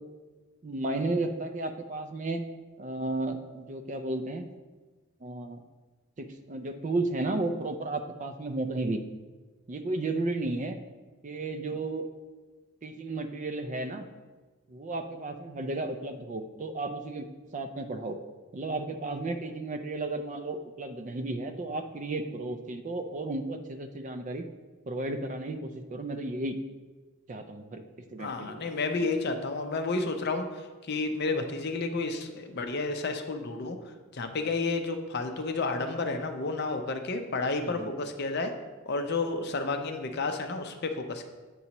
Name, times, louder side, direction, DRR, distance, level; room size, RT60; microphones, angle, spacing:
voice 1, 0.6-2.4 2.8-4.5 5.2-5.6 6.2-9.0 9.7-10.8 11.2-12.1 12.8-14.1 14.7-17.2 17.5-18.2 18.5-24.4 24.9-26.6 27.3-27.8 28.1-28.6 37.6-37.9, right 2 dB, 35° right, 8 dB, 0.4 m, -33 dB
voice 2, 28.2-30.5 30.8-33.8 34.1-38.6 38.9-41.3, left 3 dB, 50° left, 6 dB, 0.5 m, -31 dB
8.2 x 5.4 x 2.9 m, 1.3 s
head